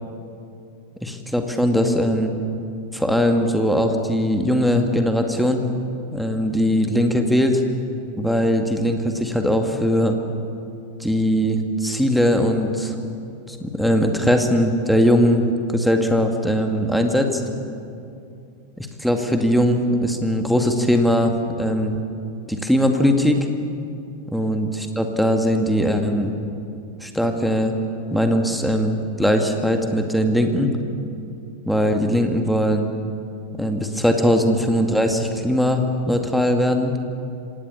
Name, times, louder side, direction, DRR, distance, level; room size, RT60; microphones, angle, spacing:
voice 1, 1.0-2.3 2.9-5.6 6.1-7.6 8.2-10.2 11.0-12.9 13.5-17.4 18.8-22.0 22.5-23.5 24.3-26.3 27.0-27.8 28.1-30.7 31.7-32.9 33.6-37.0, equal, ahead, 4 dB, 2.1 m, -20 dB
25.5 x 18.5 x 7.1 m, 2.6 s
figure-of-eight pair, 90°, 0 cm